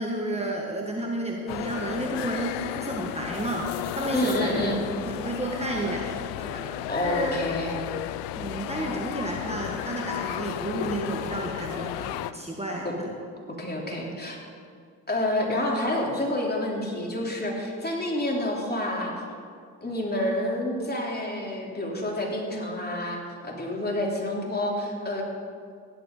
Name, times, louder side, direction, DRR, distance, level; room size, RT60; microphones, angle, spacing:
voice 1, 0.0-4.7 5.1-7.3 8.4-13.2 13.9-14.1, right 1 dB, 15° right, -1 dB, 1.6 m, -32 dB
sound 1, 1.5-12.3, left 13 dB, 75° left, 0.6 m, -33 dB
voice 2, 4.1-4.8 6.9-7.7 12.8-12.9 13.6-14.4 15.1-19.2 19.8-25.2, left 1 dB, 20° left, -1 dB, 3.5 m, -28 dB
15.5 x 11.0 x 3.9 m, 2.3 s
hypercardioid pair, 60°, 42 cm